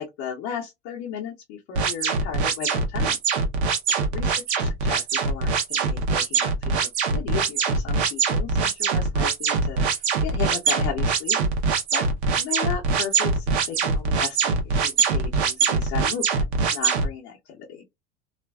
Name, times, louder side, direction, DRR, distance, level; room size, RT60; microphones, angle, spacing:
voice 1, 0.0-3.2 4.1-11.4 11.9-12.0 12.4-17.8, left 8 dB, 60° left, 0.8 m, -35 dB
sound 1, 1.8-17.1, right 5 dB, 80° right, 0.8 m, -23 dB
2.4 x 2.2 x 2.2 m
hypercardioid pair, 85°, 32 cm